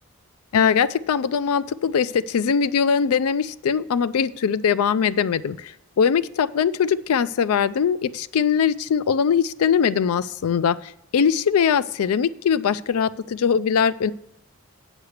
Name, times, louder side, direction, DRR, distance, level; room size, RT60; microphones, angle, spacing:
voice 1, 0.5-5.7 6.0-14.1, left 7 dB, 85° left, 16 dB, 0.4 m, -21 dB
8.1 x 5.7 x 6.4 m, 0.82 s
head